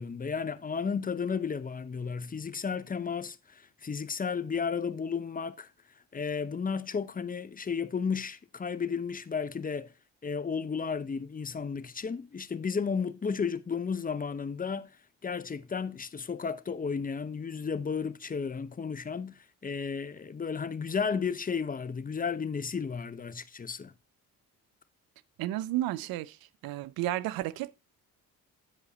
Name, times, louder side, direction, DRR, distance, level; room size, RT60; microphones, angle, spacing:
voice 1, 0.0-5.7 6.1-9.9 10.2-14.9 15.2-19.3 19.6-23.9, left 6 dB, 25° left, 0.7 m, -33 dB
voice 2, 25.4-26.4 26.6-27.8, right 15 dB, 80° right, 0.5 m, -32 dB
8.1 x 5.0 x 4.1 m
supercardioid pair, 60°, 35 cm